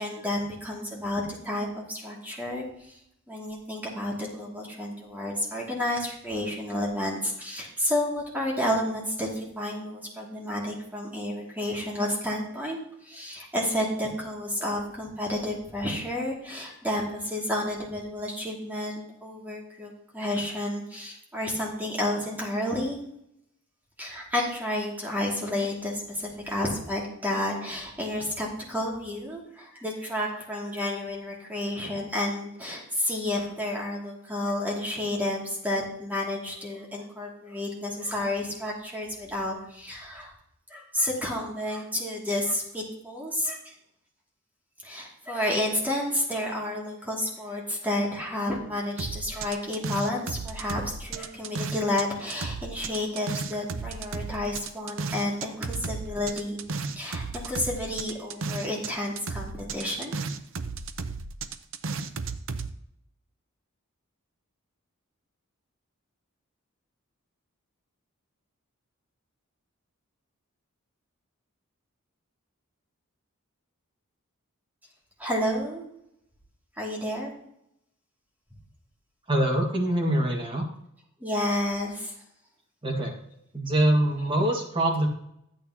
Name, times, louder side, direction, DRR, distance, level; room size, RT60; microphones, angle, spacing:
voice 1, 0.0-2.9 3.3-12.8 13.0-23.0 24.0-40.3 40.7-43.7 44.8-56.6 56.9-60.1 75.2-75.8 76.8-77.3 81.2-82.1, left 1 dB, 10° right, -4 dB, 2.5 m, -31 dB
sound 1, 49.0-52.0 52.3-58.9 59.2-62.7, right 4 dB, 65° right, 0.6 m, -34 dB
voice 2, 79.3-80.7 82.8-83.1 83.5-85.1, right 1 dB, 25° right, 0 dB, 1.9 m, -24 dB
13.5 x 8.9 x 2.9 m, 0.74 s
head